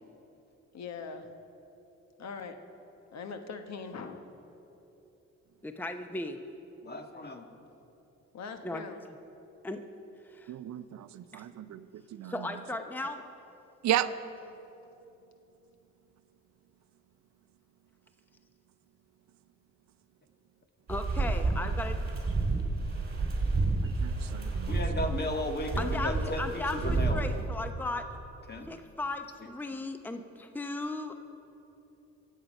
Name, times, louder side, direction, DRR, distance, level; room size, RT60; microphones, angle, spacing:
voice 1, 0.7-1.3 2.2-2.6 3.1-4.2 8.3-9.1 14.0-14.1, left 5 dB, 60° left, 7 dB, 1.3 m, -41 dB
voice 2, 5.6-6.4 8.6-8.8 9.6-9.9 10.3-10.5 11.3-11.4 12.3-13.2 20.9-22.0 25.8-28.0 28.7-31.2, left 2 dB, 5° left, 7 dB, 0.8 m, -36 dB
voice 3, 6.8-7.5 24.7-27.2 28.5-28.7, left 1 dB, 35° left, 5 dB, 1.7 m, -35 dB
voice 4, 10.5-12.6 13.8-14.1 24.0-24.8, right 12 dB, 65° right, 13 dB, 0.6 m, -34 dB
sound 1, 20.9-27.4, right 3 dB, 30° right, 3.5 m, -30 dB
24.5 x 8.3 x 5.4 m, 3.0 s
cardioid pair, 90°, 30 cm